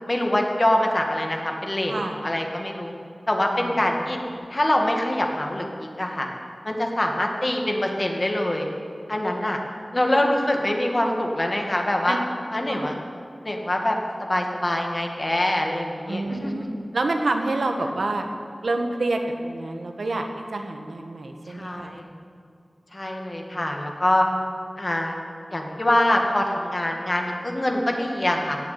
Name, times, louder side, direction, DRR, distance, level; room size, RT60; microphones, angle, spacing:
voice 1, 0.1-2.9 3.3-4.2 4.5-5.7 6.0-6.3 6.6-8.7 9.1-9.6 9.9-12.2 12.5-13.0 13.4-16.5 21.5-22.1 22.9-24.3 24.8-25.1 25.5-28.6, left 1 dB, 35° left, 1 dB, 2.1 m, -24 dB
voice 2, 1.9-2.2 3.6-3.7 12.1-12.2 12.7-13.0 16.1-18.3 18.6-22.0 23.5-23.7, right 2 dB, 90° right, 4 dB, 1.4 m, -28 dB
16.5 x 7.2 x 9.5 m, 2.4 s
wide cardioid pair, 70°, 0 cm